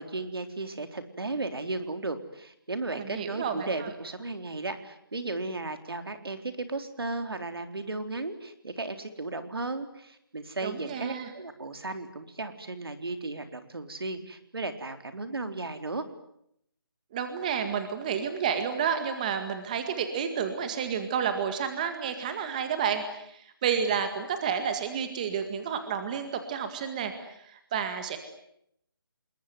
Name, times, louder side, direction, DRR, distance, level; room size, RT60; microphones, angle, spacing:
voice 1, 0.0-16.0, right 2 dB, 80° right, 8 dB, 3.8 m, -35 dB
voice 2, 3.0-3.9 10.6-11.3 17.1-28.2, right 7 dB, 20° right, 8 dB, 1.9 m, -30 dB
29.0 x 21.5 x 9.5 m, 0.75 s
figure-of-eight pair, 170°, 12 cm